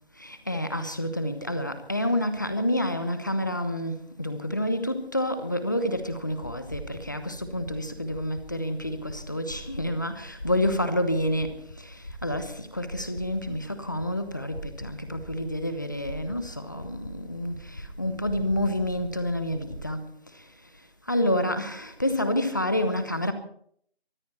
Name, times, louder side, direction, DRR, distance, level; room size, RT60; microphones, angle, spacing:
voice 1, 0.2-23.3, left 1 dB, 20° left, 1.0 m, -29 dB
sound 1, 6.2-20.0, equal, 55° left, 4.8 m, -43 dB
23.5 x 14.5 x 4.3 m
figure-of-eight pair, 175°, 32 cm